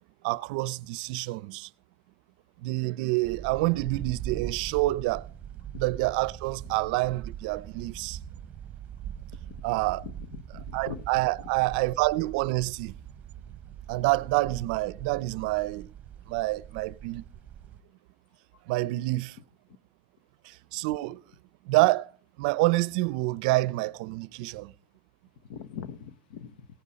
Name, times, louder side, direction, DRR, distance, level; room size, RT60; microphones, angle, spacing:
voice 1, 0.2-1.7 2.6-5.3 5.8-8.2 9.6-10.0 10.7-12.9 13.9-15.9 16.3-17.2 18.7-19.4 20.4-21.2 21.6-22.1 22.4-24.7, right 20 dB, 70° right, 0.5 m, -27 dB
sound 1, 3.2-17.8, right 10 dB, 30° right, 0.9 m, -42 dB
voice 2, 10.0-11.0 25.4-26.7, left 7 dB, 85° left, 0.9 m, -42 dB
17.5 x 9.7 x 5.2 m
supercardioid pair, 135°, 5 cm